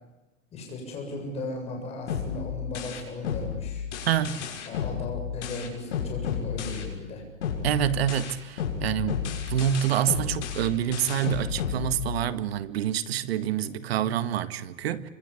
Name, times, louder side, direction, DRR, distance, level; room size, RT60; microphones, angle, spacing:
voice 1, 0.5-3.9 4.5-7.2, left 3 dB, 15° left, 7.6 m, -36 dB
sound 1, 2.1-7.1 7.4-12.4, left 7 dB, 60° left, 6.7 m, -32 dB
voice 2, 4.1-4.4 7.6-9.2 9.5-15.1, right 10 dB, 50° right, 1.9 m, -27 dB
26.5 x 25.5 x 8.5 m
hypercardioid pair, 165°, 39 cm